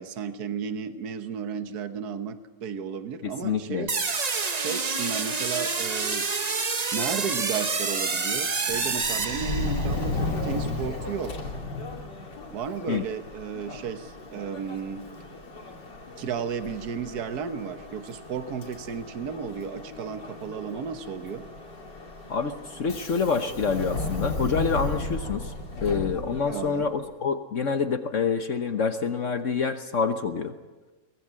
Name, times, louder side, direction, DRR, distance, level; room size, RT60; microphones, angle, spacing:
voice 1, 0.0-3.9 4.5-6.3 6.9-11.3 12.5-15.0 16.2-21.5 26.5-26.9, right 6 dB, 65° right, 9 dB, 1.6 m, -33 dB
voice 2, 3.2-3.9 12.9-13.0 22.3-25.5 25.8-30.5, left 5 dB, 50° left, 8 dB, 1.2 m, -27 dB
sound 1, 3.9-10.0, right 4 dB, 35° right, 0.7 m, -28 dB
Subway metro underground, 8.6-27.0, left 2 dB, 80° left, 3.3 m, -35 dB
23.0 x 19.5 x 7.6 m, 1.3 s
omnidirectional pair, 1.9 m